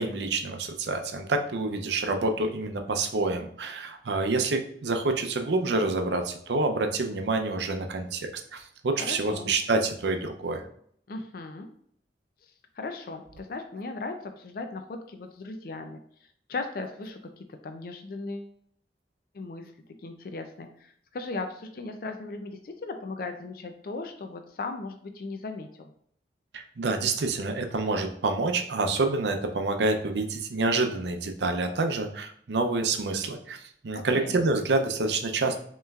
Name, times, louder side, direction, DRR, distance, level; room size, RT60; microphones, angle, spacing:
voice 1, 0.0-10.6 26.5-35.6, right 3 dB, 80° right, 6 dB, 0.6 m, -27 dB
voice 2, 9.0-9.5 11.1-11.7 12.8-18.5 19.3-19.7 20.0-25.9 33.9-34.3, left 3 dB, 55° left, 6 dB, 0.4 m, -37 dB
5.5 x 3.0 x 2.4 m, 0.64 s
head